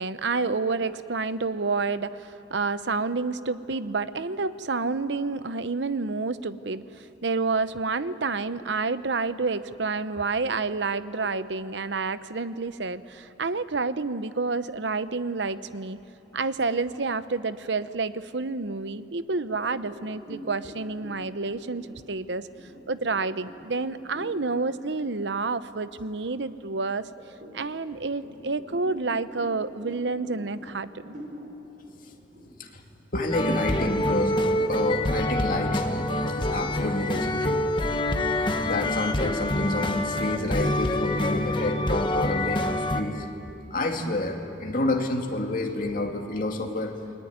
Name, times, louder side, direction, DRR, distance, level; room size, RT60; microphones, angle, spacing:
voice 1, 0.0-16.0 16.3-22.5 22.9-27.1 27.5-31.2, right 4 dB, 75° right, 13 dB, 0.8 m, -29 dB
sound 1, 19.4-24.5 25.0-25.2 25.6-26.5 27.0-33.7, equal, 50° right, 6.3 m, -45 dB
voice 2, 33.1-34.4 34.7-36.1 36.4-37.6 38.6-46.9, left 2 dB, 50° left, 2 dB, 2.5 m, -29 dB
sound 2, 33.3-43.0, left 1 dB, 25° left, 1.3 m, -26 dB
29.0 x 20.5 x 9.4 m, 2.7 s
head